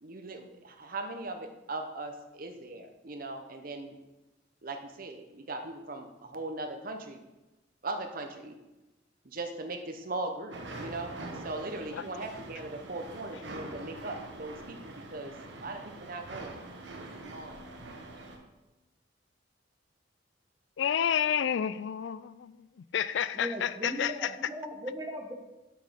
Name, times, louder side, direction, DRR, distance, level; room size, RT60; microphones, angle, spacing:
voice 1, 0.0-3.9 4.6-7.2 7.8-8.5 9.2-16.6 17.2-17.6, right 2 dB, 50° right, 5 dB, 0.9 m, -39 dB
sound 1, 10.5-18.4, right 2 dB, 65° right, 1.2 m, -44 dB
voice 2, 20.8-22.7 22.9-24.3, left 9 dB, 65° left, 16 dB, 0.3 m, -30 dB
voice 3, 23.3-25.3, equal, 20° right, 2 dB, 1.1 m, -38 dB
7.4 x 5.2 x 5.7 m, 1.0 s
head